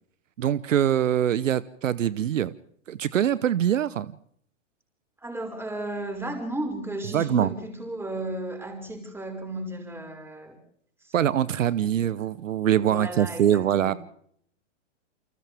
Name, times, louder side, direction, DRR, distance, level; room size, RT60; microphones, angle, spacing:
voice 1, 0.4-2.5 2.9-4.1 7.1-7.5 11.1-13.9, right 10 dB, 80° right, 17 dB, 1.0 m, -23 dB
voice 2, 5.2-10.6 11.0-11.2 11.4-12.3 12.8-14.0, right 1 dB, 5° right, 3 dB, 5.7 m, -35 dB
29.0 x 26.0 x 3.5 m, 0.65 s
hypercardioid pair, 125°, 37 cm